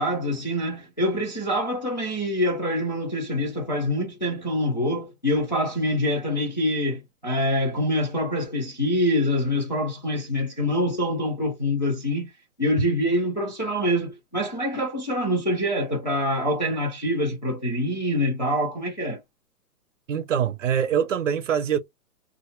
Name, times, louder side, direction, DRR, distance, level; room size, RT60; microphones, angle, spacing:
voice 1, 0.0-12.3 12.6-19.2, left 1 dB, 35° left, 0.4 m, -25 dB
voice 2, 20.1-21.8, right 8 dB, 55° right, 0.5 m, -24 dB
2.5 x 2.1 x 2.5 m
hypercardioid pair, 165°, 46 cm